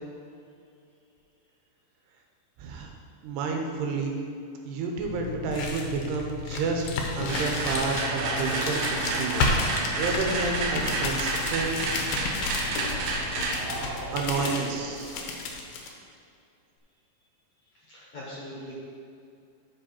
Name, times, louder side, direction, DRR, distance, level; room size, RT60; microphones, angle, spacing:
voice 1, 2.6-2.9 3.2-4.2 4.6-11.8 14.1-15.2, right 4 dB, 85° right, 2 dB, 3.0 m, -30 dB
sound 1, 5.0-15.9, left 3 dB, 75° left, 2.4 m, -32 dB
sound 2, 7.3-15.3, right 3 dB, 70° right, 2.4 m, -31 dB
voice 2, 17.9-18.7, left 1 dB, 55° left, -8 dB, 1.9 m, -43 dB
11.5 x 4.8 x 4.4 m, 2.5 s
omnidirectional pair, 4.7 m